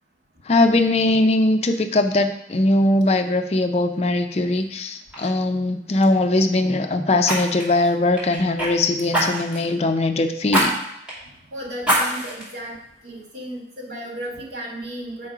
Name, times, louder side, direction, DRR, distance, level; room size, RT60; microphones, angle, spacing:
voice 1, 0.5-10.7, left 2 dB, 35° left, 6 dB, 0.4 m, -20 dB
Fire, 4.5-4.8 5.1-5.3 7.2-8.7 9.1-9.7 10.5-10.7 11.1-11.2 11.8-12.4 13.0-13.1, right 1 dB, 5° right, 2.2 m, -23 dB
voice 2, 11.5-12.8 13.0-15.3, right 1 dB, 75° right, -2 dB, 2.0 m, -34 dB
6.9 x 4.5 x 4.8 m, 0.80 s
head